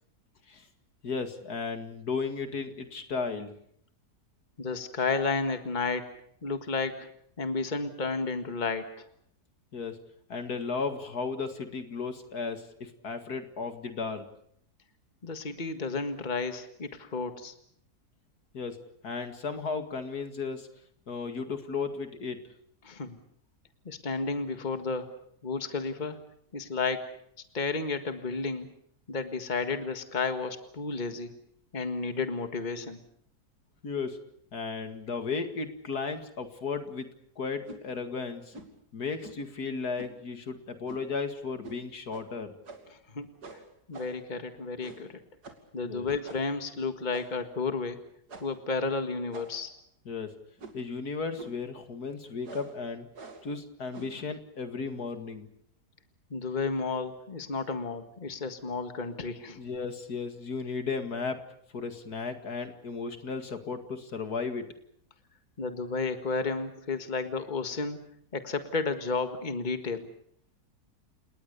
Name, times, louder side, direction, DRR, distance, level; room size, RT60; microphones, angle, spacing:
voice 1, 1.0-3.5 9.7-10.0 10.3-14.3 18.5-20.7 21.1-22.4 33.8-34.2 34.5-37.1 37.4-38.5 38.9-42.5 45.8-46.1 50.1-50.4 50.7-53.1 53.4-55.5 59.6-61.4 61.7-64.7, left 4 dB, 70° left, 8 dB, 2.5 m, -35 dB
voice 2, 4.6-6.1 6.4-7.1 7.4-9.1 15.2-17.5 22.8-23.2 23.9-25.1 25.4-26.2 26.5-27.2 27.5-28.7 29.1-31.3 31.7-33.0 43.1-43.3 43.9-45.2 45.7-48.0 48.4-49.7 56.3-59.6 65.6-68.0 68.3-70.1, left 4 dB, 30° left, 8 dB, 1.8 m, -32 dB
sound 1, 37.6-37.8 38.5-38.8 39.2-39.5 40.0-40.2 40.9-41.2 41.6-41.8 42.1-42.3 42.6-43.0 43.4-44.3 44.8-45.1 45.4-45.7 46.2-46.6 47.1-47.5 48.3-48.6 49.3-49.8 50.6-50.9 51.4-51.7 52.4-52.8 53.1-53.5 53.9-54.2, right 3 dB, 85° right, 3.2 m, -46 dB
30.0 x 19.0 x 6.8 m, 0.67 s
omnidirectional pair, 1.7 m